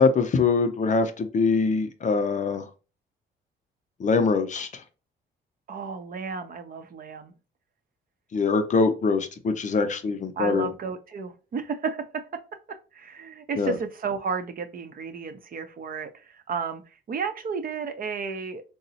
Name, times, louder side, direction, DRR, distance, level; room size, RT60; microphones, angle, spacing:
voice 1, 0.0-2.6 4.0-4.7 8.3-10.7 13.6-13.8, left 4 dB, 40° left, 0.5 m, -23 dB
voice 2, 5.7-7.3 10.4-12.0 12.9-16.1 16.5-16.8 17.1-18.6, right 5 dB, 45° right, 0.6 m, -32 dB
3.7 x 2.0 x 2.7 m
cardioid pair, 90°, 20 cm